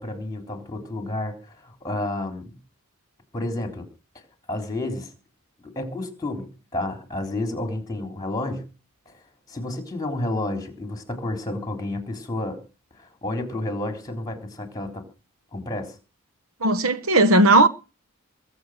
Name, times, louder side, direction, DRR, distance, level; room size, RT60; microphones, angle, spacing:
voice 1, 0.0-2.6 3.3-3.9 4.5-5.1 5.6-8.6 9.1-9.2 9.5-12.6 13.0-15.0 15.5-16.0, left 1 dB, 15° left, 3.6 m, -30 dB
voice 2, 16.6-17.7, right 2 dB, 80° right, 1.1 m, -16 dB
22.0 x 7.8 x 6.5 m
head